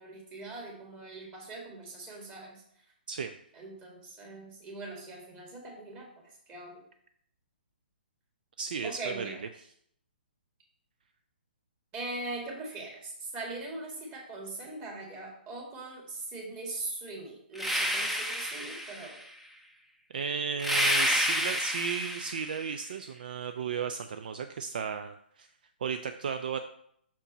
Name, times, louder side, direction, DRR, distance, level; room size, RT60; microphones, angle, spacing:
voice 1, 0.0-2.6 3.5-6.1 6.5-6.8 8.8-9.4 11.9-19.2, right 2 dB, 25° right, -2 dB, 2.0 m, -41 dB
voice 2, 8.6-9.7 20.1-25.5 25.8-26.6, right 6 dB, 55° right, 8 dB, 0.4 m, -34 dB
sound 1, 17.5-19.2 20.6-22.7, equal, ahead, 0.6 m, -29 dB
5.9 x 4.4 x 4.1 m, 0.68 s
figure-of-eight pair, 130°, 6 cm